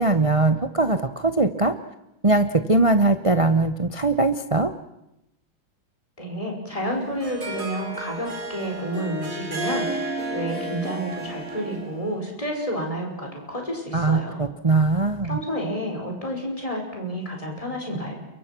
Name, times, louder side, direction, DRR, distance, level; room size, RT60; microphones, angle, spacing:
voice 1, 0.0-1.7 2.2-4.7 13.9-15.4, right 2 dB, 60° right, 9 dB, 0.3 m, -21 dB
voice 2, 6.2-14.4 15.2-18.1, equal, 15° left, 1 dB, 5.5 m, -30 dB
Harp, 6.8-12.1, right 2 dB, 40° right, 3.9 m, -32 dB
29.0 x 23.5 x 6.0 m, 0.89 s
omnidirectional pair, 2.3 m